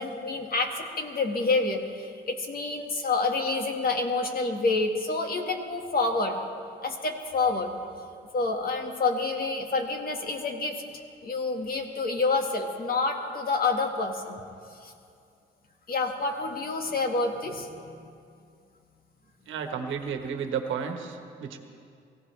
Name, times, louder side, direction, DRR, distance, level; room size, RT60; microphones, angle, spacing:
voice 1, 0.0-6.4 6.8-7.7 8.3-10.8 11.2-14.4 14.8-14.9 15.9-18.0, left 3 dB, 50° left, 3 dB, 1.9 m, -28 dB
voice 2, 19.5-21.6, right 6 dB, 80° right, 5 dB, 1.4 m, -32 dB
23.5 x 16.0 x 3.4 m, 2.4 s
cardioid pair, 90°, 20 cm